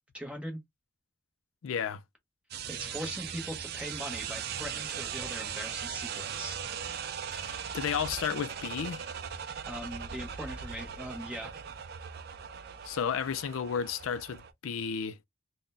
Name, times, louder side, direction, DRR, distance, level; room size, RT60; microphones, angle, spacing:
voice 1, 0.1-0.6 2.7-6.6 9.7-11.5, equal, 5° right, 0.9 m, -40 dB
voice 2, 1.6-2.0 7.3-9.0 12.8-15.2, left 7 dB, 80° left, 0.4 m, -33 dB
sound 1, 2.5-14.5, right 8 dB, 50° right, 0.4 m, -39 dB
3.7 x 2.1 x 2.5 m
head